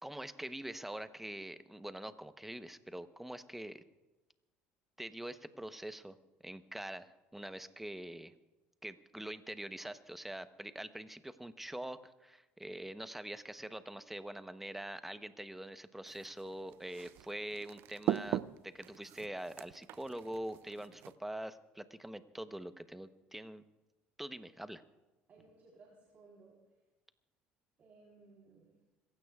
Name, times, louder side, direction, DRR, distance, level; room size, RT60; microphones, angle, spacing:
voice 1, 0.0-3.8 5.0-6.2 6.4-8.3 8.8-23.6 24.2-24.8, right 1 dB, 5° right, 11 dB, 0.9 m, -44 dB
sound 1, 16.1-21.1, right 13 dB, 65° right, 0.4 m, -40 dB
voice 2, 25.3-26.5 27.8-28.7, right 3 dB, 45° right, -3 dB, 3.8 m, -60 dB
26.5 x 16.0 x 2.4 m, 1.1 s
supercardioid pair, 95°, 4 cm